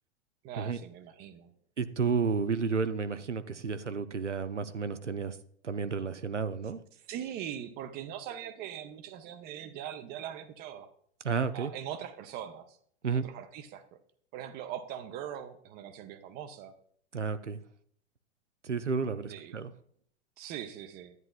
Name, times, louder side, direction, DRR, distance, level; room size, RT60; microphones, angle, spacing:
voice 1, 0.4-1.5 7.1-10.9 11.5-12.8 13.1-13.8 14.3-16.7 19.2-19.6 20.4-21.1, right 10 dB, 30° right, 10 dB, 0.7 m, -41 dB
voice 2, 1.8-5.4 5.6-6.8 11.2-11.7 13.0-13.2 17.1-17.6 18.6-19.7, right 5 dB, 85° right, 12 dB, 0.6 m, -31 dB
11.0 x 9.6 x 2.3 m, 0.63 s
figure-of-eight pair, 95°, 35 cm